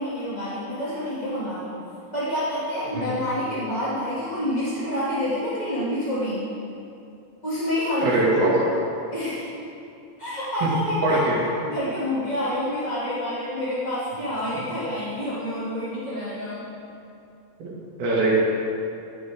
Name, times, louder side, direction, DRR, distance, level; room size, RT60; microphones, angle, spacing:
voice 1, 0.0-1.7 2.1-6.5 7.4-8.4 9.1-9.5 10.2-16.7, equal, 15° left, -10 dB, 1.6 m, -28 dB
voice 2, 8.0-8.5 11.0-11.4 17.6-17.7 18.0-18.4, right 2 dB, 70° right, -5 dB, 4.2 m, -21 dB
16.0 x 13.0 x 3.7 m, 2.6 s
omnidirectional pair, 4.5 m